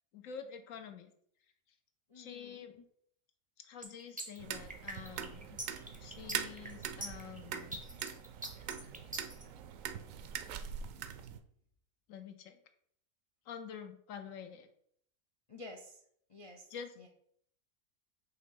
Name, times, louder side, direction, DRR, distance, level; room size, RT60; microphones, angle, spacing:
voice 1, 0.1-1.1 2.1-2.7 3.6-5.6 6.0-7.8 12.1-12.6 13.5-14.7 16.7-16.9, left 7 dB, 70° left, 8 dB, 1.0 m, -47 dB
voice 2, 2.1-2.8 15.5-16.0 16.3-16.7 17.0-17.1, left 2 dB, 55° left, 2 dB, 0.3 m, -51 dB
sound 1, 3.8-9.4, right 1 dB, 10° right, 0.5 m, -43 dB
sound 2, 4.4-11.4, right 8 dB, 70° right, 0.9 m, -43 dB
5.7 x 3.3 x 5.4 m, 0.67 s
omnidirectional pair, 1.5 m